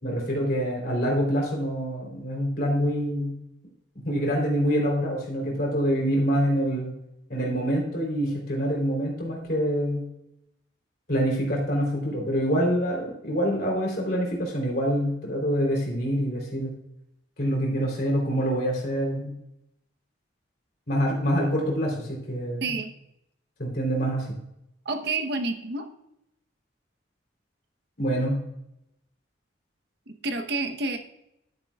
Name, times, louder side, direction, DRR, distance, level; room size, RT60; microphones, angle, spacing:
voice 1, 0.0-3.3 4.0-6.9 7.3-10.0 11.1-16.7 17.4-19.3 20.9-22.7 23.6-24.2 28.0-28.4, equal, 50° left, -1 dB, 3.3 m, -26 dB
voice 2, 22.6-22.9 24.8-25.9 30.1-31.0, right 3 dB, 60° right, 6 dB, 0.9 m, -29 dB
11.5 x 9.8 x 2.3 m, 0.82 s
head